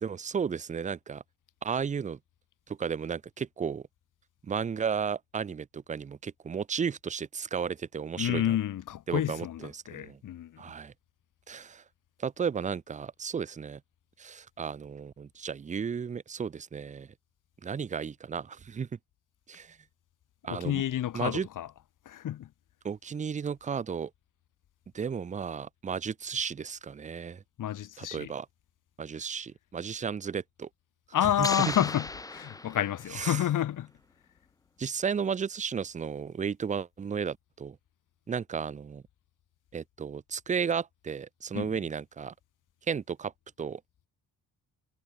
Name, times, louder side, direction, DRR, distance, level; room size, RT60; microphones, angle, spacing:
voice 1, 0.0-1.2 1.6-2.2 2.7-3.8 4.4-8.6 9.1-10.2 10.6-10.9 11.5-11.8 12.2-13.8 14.2-17.1 17.6-18.9 19.5-19.8 20.4-20.8 21.1-21.5 22.8-24.1 24.9-27.4 28.0-28.5 29.0-30.7 31.2-31.7 33.1-33.4 34.8-37.8 38.3-39.0 39.7-42.3 42.9-43.3 43.6-43.8, right 6 dB, 20° right, 0.6 m, -34 dB
voice 2, 8.2-10.6 20.5-21.7 22.1-22.5 27.6-28.3 31.1-33.9 41.5-41.7, left 11 dB, 55° left, 2.8 m, -30 dB
sound 1, 31.4-33.3, left 2 dB, 10° left, 1.5 m, -36 dB
cardioid pair, 180°, 38 cm